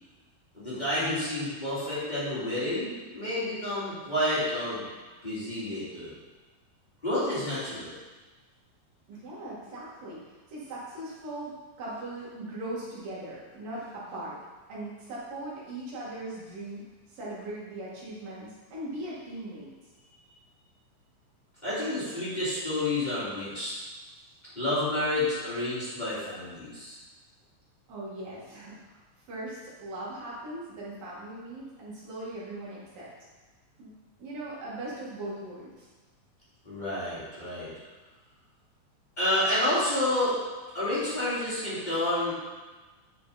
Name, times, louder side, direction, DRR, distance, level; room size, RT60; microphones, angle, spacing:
voice 1, 0.5-4.8 5.2-6.1 7.0-7.9 21.6-23.7 24.5-27.0 36.6-37.7 39.2-40.3 40.7-42.3, left 1 dB, 15° left, -11 dB, 3.1 m, -29 dB
voice 2, 9.1-14.4 14.7-19.7 27.9-29.0 29.3-33.1 33.8-33.9 34.2-35.9, right 1 dB, 75° right, -7 dB, 4.0 m, -39 dB
9.6 x 7.4 x 4.3 m, 1.3 s
omnidirectional pair, 4.0 m